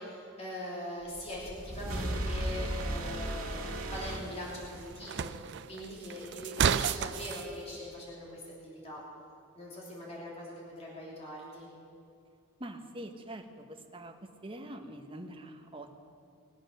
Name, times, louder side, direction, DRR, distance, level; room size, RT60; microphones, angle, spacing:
voice 1, 0.0-9.0 9.6-11.7, left 1 dB, 30° left, -5 dB, 3.1 m, -42 dB
sound 1, 1.2-5.0, right 1 dB, 80° right, 1.9 m, -36 dB
sound 2, 2.5-7.5, right 7 dB, 55° right, 0.4 m, -34 dB
voice 2, 12.6-14.2 14.4-16.0, right 1 dB, 25° right, 3 dB, 1.1 m, -44 dB
20.5 x 8.6 x 6.5 m, 2.5 s
head